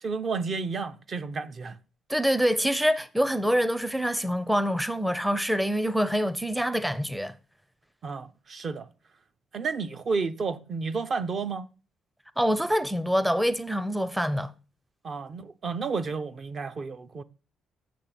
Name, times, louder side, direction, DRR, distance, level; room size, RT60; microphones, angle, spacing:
voice 1, 0.0-1.8 8.0-8.9 9.5-11.7 15.0-17.2, right 4 dB, 50° right, 0.7 m, -31 dB
voice 2, 2.1-7.3 12.4-14.5, equal, 5° right, 0.5 m, -25 dB
8.3 x 6.2 x 5.8 m
cardioid pair, 90°, 0 cm